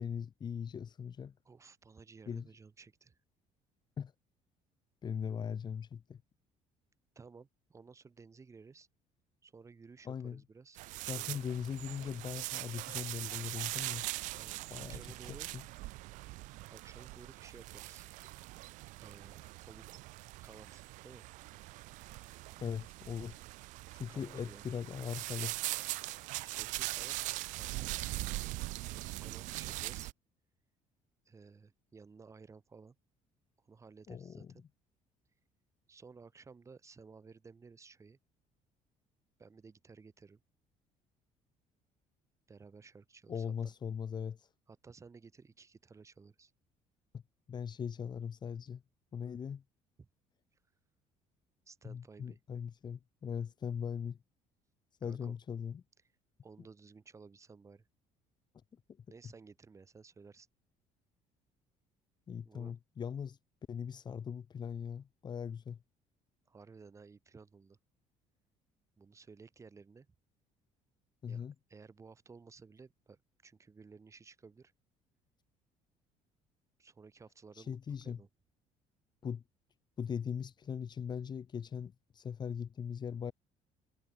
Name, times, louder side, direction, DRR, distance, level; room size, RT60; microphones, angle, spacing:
voice 1, 0.0-1.3 2.3-2.5 4.0-4.1 5.0-6.2 10.1-10.4 11.1-14.1 14.7-15.6 22.6-23.4 23.9-25.6 34.1-34.5 43.3-44.5 47.1-47.2 47.5-48.8 49.1-49.6 51.8-54.2 55.0-55.8 62.3-63.4 63.7-65.8 71.2-71.5 77.6-78.2 79.2-79.4 80.0-83.3, left 7 dB, 35° left, 1.9 m, -40 dB
voice 2, 1.4-3.2 7.1-8.9 9.4-10.8 11.0-11.4 14.3-15.5 16.7-18.1 19.0-20.0 20.4-21.2 24.1-24.6 25.9-27.8 28.8-30.1 31.2-33.0 33.6-34.6 35.9-38.2 39.4-40.4 42.5-43.7 44.7-46.5 50.0-50.1 51.7-52.4 55.0-55.4 56.4-57.8 59.1-60.5 62.4-62.7 66.5-67.8 69.0-70.1 71.3-74.7 76.8-77.8 78.0-78.3, right 4 dB, 25° right, 4.4 m, -56 dB
sound 1, 10.8-30.1, right 20 dB, 80° right, 0.6 m, -41 dB
cardioid pair, 125°, 13 cm